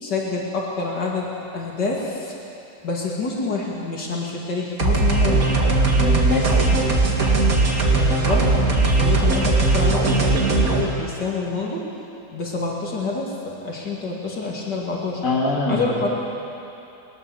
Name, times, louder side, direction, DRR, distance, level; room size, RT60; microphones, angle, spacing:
voice 1, 0.0-2.3 2.8-5.5 7.9-8.5 9.0-11.8 12.3-15.2 15.7-16.1, left 3 dB, 70° left, -3 dB, 3.0 m, -27 dB
sound 1, 4.8-10.8, right 2 dB, 50° right, 2.6 m, -18 dB
voice 2, 5.8-6.6 15.2-16.0, left 2 dB, 45° left, -3 dB, 3.0 m, -24 dB
21.0 x 19.0 x 7.1 m, 2.8 s
omnidirectional pair, 1.9 m